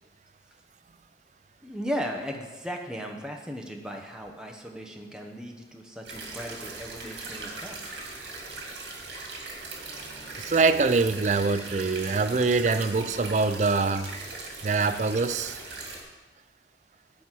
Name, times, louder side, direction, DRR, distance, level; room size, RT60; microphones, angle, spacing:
voice 1, 1.6-8.0, equal, 5° right, 1 dB, 0.9 m, -36 dB
sound 1, 6.0-16.0, right 3 dB, 80° right, 2.1 m, -39 dB
sound 2, 9.7-15.2, equal, 60° right, 1.5 m, -54 dB
voice 2, 10.4-14.1 14.6-15.6, right 4 dB, 40° right, 11 dB, 0.4 m, -24 dB
10.5 x 4.1 x 7.4 m, 1.2 s
head